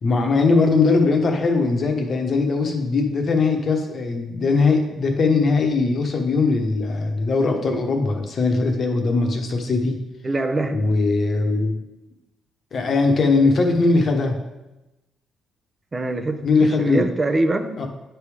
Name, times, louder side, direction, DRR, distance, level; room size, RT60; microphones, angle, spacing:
voice 1, 0.0-10.0 10.7-11.8 12.7-14.4 16.4-17.0 17.8-17.9, left 3 dB, 50° left, 4 dB, 1.1 m, -20 dB
voice 2, 10.2-10.8 15.9-17.8, right 2 dB, 25° right, 6 dB, 0.7 m, -24 dB
9.4 x 3.5 x 4.9 m, 1.0 s
cardioid pair, 90°, 0 cm